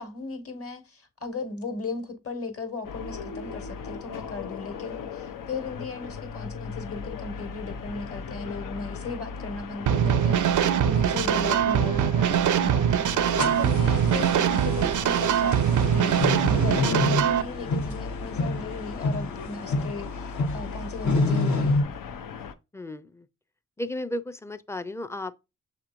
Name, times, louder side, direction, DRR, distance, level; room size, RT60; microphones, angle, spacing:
voice 1, 0.0-21.9, left 4 dB, 45° left, 1.5 m, -37 dB
sound 1, 2.8-22.5, left 5 dB, 75° left, 0.6 m, -38 dB
sound 2, 9.9-17.4, right 9 dB, 65° right, 0.5 m, -22 dB
voice 2, 11.4-11.8 22.7-23.3 23.8-25.3, left 1 dB, 10° left, 0.5 m, -35 dB
sound 3, 13.2-21.8, left 2 dB, 60° left, 1.0 m, -28 dB
6.7 x 3.0 x 2.5 m
supercardioid pair, 40°, 33 cm